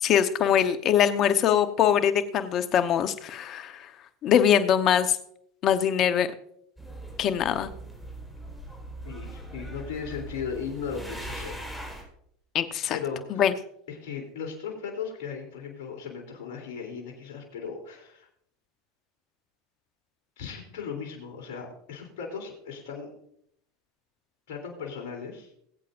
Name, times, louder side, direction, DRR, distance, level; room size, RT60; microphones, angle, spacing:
voice 1, 0.0-3.9 4.2-5.2 5.6-6.3 7.2-7.7 12.5-13.0 13.3-13.5, left 9 dB, 45° left, 10 dB, 1.0 m, -23 dB
sound 1, 6.8-12.0, right 1 dB, ahead, 4.3 m, -40 dB
voice 2, 9.0-11.6 12.9-13.4 13.9-18.3 20.4-23.1 24.5-25.5, left 6 dB, 70° left, 0 dB, 3.3 m, -37 dB
20.5 x 8.4 x 2.6 m, 0.70 s
hypercardioid pair, 95°, 0 cm